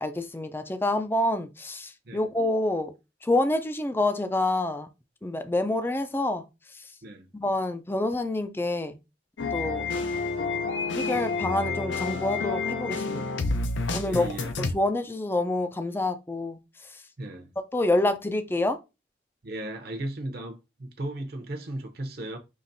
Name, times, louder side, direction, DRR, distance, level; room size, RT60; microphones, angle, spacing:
voice 1, 0.0-2.9 3.2-4.9 5.2-6.4 7.3-8.9 9.5-9.9 10.9-13.2 13.9-14.3 14.7-16.6 17.7-18.8, left 2 dB, 10° left, 0.3 m, -27 dB
sound 1, 9.4-14.7, left 3 dB, 80° left, 0.6 m, -29 dB
voice 2, 14.0-14.5 17.2-17.5 19.4-22.4, right 1 dB, 55° right, 0.7 m, -36 dB
5.7 x 3.0 x 2.6 m
head